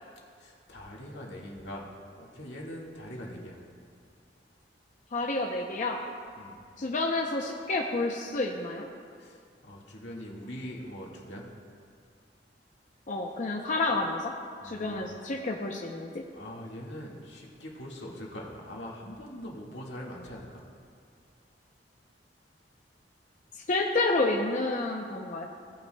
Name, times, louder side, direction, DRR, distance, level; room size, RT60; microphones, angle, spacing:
voice 1, 0.4-1.9 2.2-3.6 6.4-6.5 9.2-11.5 14.6-15.1 16.3-20.6, equal, 85° left, -3 dB, 1.8 m, -42 dB
voice 2, 5.1-6.0 6.8-8.9 13.1-14.3 14.6-16.1 23.7-25.4, left 2 dB, 45° left, 0 dB, 0.6 m, -29 dB
17.0 x 9.4 x 2.2 m, 2.2 s
head